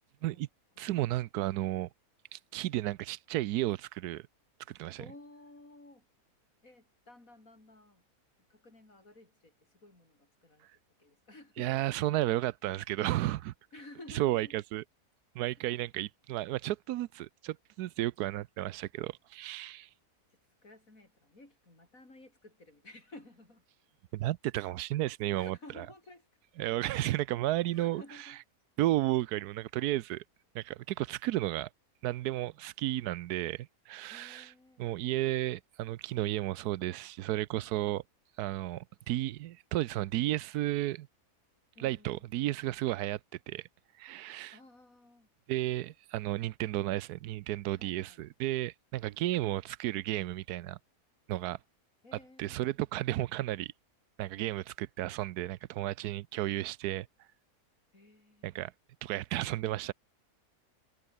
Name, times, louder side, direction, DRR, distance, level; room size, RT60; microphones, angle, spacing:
voice 1, 0.8-1.9 2.3-4.2 4.7-5.0 11.6-13.5 14.1-14.8 15.3-19.9 24.1-25.8 26.6-28.0 28.8-30.2 30.5-31.7 32.0-34.5 34.8-38.0 38.4-41.1 41.8-43.2 43.5-43.7 44.0-44.6 45.5-50.8 51.3-51.6 52.4-53.7 54.2-57.1 58.4-58.7 59.0-59.9, right 15 dB, 90° right, 1.2 m, -33 dB
voice 2, 5.0-6.1 6.6-8.0 8.5-10.7 11.0-11.7 13.7-14.6 15.5-15.8 20.3-23.6 25.3-26.3 27.7-28.4 34.1-35.2 41.8-42.3 44.5-45.3 47.8-48.2 52.0-52.9 57.9-58.7, left 2 dB, 60° left, 6.7 m, -54 dB
omnidirectional pair, 1.6 m